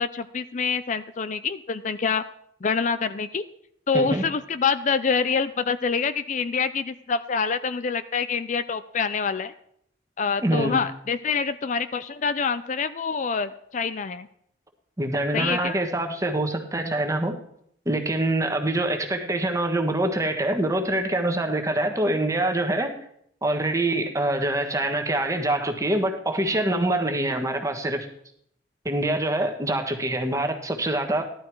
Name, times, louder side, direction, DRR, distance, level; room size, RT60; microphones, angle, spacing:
voice 1, 0.0-2.2 2.6-3.4 3.9-9.5 10.2-14.3 15.3-15.8, left 5 dB, 45° left, 12 dB, 0.5 m, -26 dB
voice 2, 10.4-10.8 15.0-17.4 17.8-22.9 23.4-28.1 28.8-31.2, right 1 dB, 20° right, 4 dB, 1.4 m, -25 dB
16.0 x 12.0 x 4.7 m, 0.70 s
head